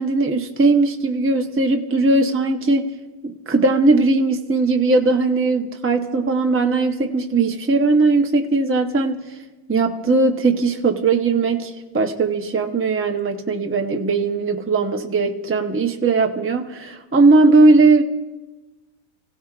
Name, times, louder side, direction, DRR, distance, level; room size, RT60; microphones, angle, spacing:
voice 1, 0.0-2.9 3.2-9.2 9.7-18.0, right 3 dB, 15° right, 3 dB, 0.6 m, -18 dB
29.0 x 16.5 x 2.4 m, 1.2 s
omnidirectional pair, 1.6 m